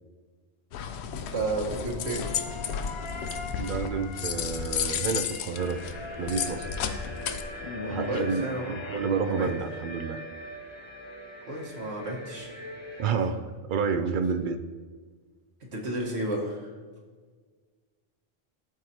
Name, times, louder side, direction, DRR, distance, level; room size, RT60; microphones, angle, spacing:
sound 1, 0.7-7.4, left 8 dB, 85° left, 0.8 m, -33 dB
voice 1, 1.3-2.2 7.8-8.8 9.3-9.5 11.5-12.5 15.7-16.7, right 2 dB, 85° right, -3 dB, 1.7 m, -32 dB
sound 2, 1.5-9.0, left 4 dB, 45° left, 0.4 m, -42 dB
voice 2, 3.6-5.8 6.2-6.7 7.9-10.2 13.0-14.6, right 5 dB, 60° right, 9 dB, 0.6 m, -29 dB
sound 3, 5.5-13.1, equal, 25° left, 1.2 m, -41 dB
13.0 x 4.8 x 2.9 m, 1.5 s
omnidirectional pair, 1.1 m